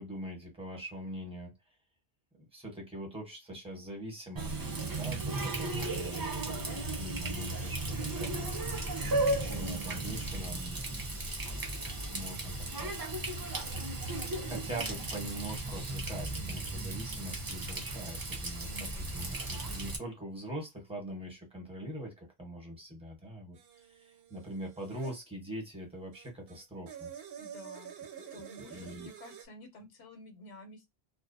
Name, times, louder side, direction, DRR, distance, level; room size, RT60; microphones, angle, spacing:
voice 1, 0.0-1.5 2.3-8.5 9.1-11.3 12.1-12.5 12.8-12.9 14.4-23.6 23.9-27.1 28.1-28.4 28.7-29.1, right 1 dB, 5° right, 0.9 m, -43 dB
Water tap faucet, 4.4-20.0, right 2 dB, 35° right, 0.3 m, -35 dB
voice 2, 18.6-19.4 27.4-27.9 28.3-30.9, left 1 dB, 90° left, 0.9 m, -51 dB
sound 1, 23.5-25.2 26.1-29.5, right 8 dB, 75° right, 0.8 m, -48 dB
2.3 x 2.0 x 2.6 m
omnidirectional pair, 1.1 m